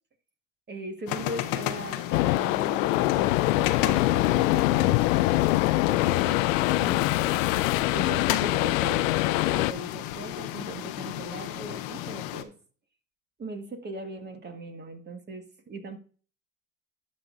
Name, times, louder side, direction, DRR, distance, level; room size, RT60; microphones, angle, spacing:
voice 1, 0.7-6.5 6.8-7.5 7.9-12.5 13.4-16.0, right 2 dB, 25° right, 6 dB, 1.7 m, -40 dB
sound 1, 1.1-12.4, left 13 dB, 70° left, 1.0 m, -34 dB
sound 2, 2.1-9.7, left 18 dB, 85° left, 0.5 m, -24 dB
11.5 x 6.4 x 2.6 m, 0.39 s
supercardioid pair, 90°, 38 cm